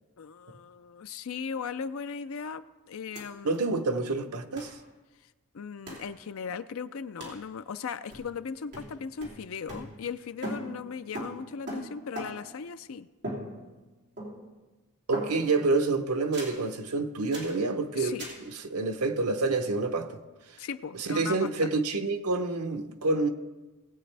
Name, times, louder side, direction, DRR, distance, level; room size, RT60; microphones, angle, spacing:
voice 1, 0.2-3.8 5.5-13.1 17.9-18.3 20.6-21.5, left 6 dB, 70° left, 0.5 m, -38 dB
sound 1, 3.1-3.2 3.5-3.6 4.6-4.8 5.9-6.1 7.2-7.4 8.1-8.4 8.7-10.2 10.4-12.6 13.2-13.9 14.2-14.6 15.1-15.6 16.3-16.6 17.3-17.6 18.2-18.5, right 1 dB, 50° right, 3.0 m, -39 dB
voice 2, 3.4-4.7 15.1-18.2 18.5-20.2 20.9-23.3, right 3 dB, 90° right, 0.8 m, -28 dB
19.0 x 8.4 x 3.4 m
head